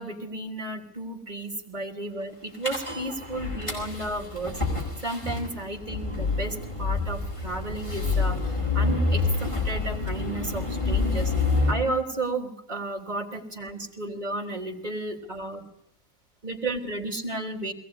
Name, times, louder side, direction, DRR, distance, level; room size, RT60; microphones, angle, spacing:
voice 1, 0.0-4.6 5.0-11.3 11.7-15.6 16.4-17.7, right 2 dB, 30° right, 1 dB, 3.5 m, -33 dB
sound 1, 2.6-11.7, left 3 dB, 20° left, 7.2 m, -27 dB
22.5 x 19.0 x 9.7 m, 0.75 s
omnidirectional pair, 1.5 m